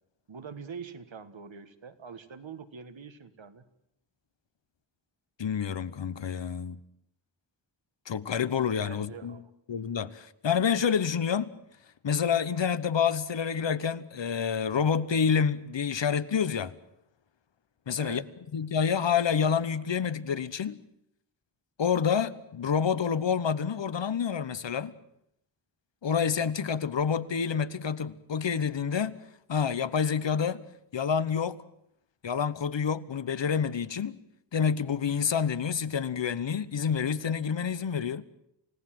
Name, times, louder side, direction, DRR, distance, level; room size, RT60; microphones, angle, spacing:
voice 1, 0.3-3.6 8.8-9.4 18.0-18.2, right 6 dB, 70° right, 1.7 m, -44 dB
voice 2, 5.4-6.8 8.1-9.4 9.7-11.5 12.0-16.7 17.9-18.2 18.5-20.8 21.8-24.9 26.0-30.6 30.9-31.6 32.2-34.2 34.5-38.2, left 7 dB, 65° left, 1.0 m, -28 dB
29.0 x 17.5 x 7.7 m
wide cardioid pair, 100°, 47 cm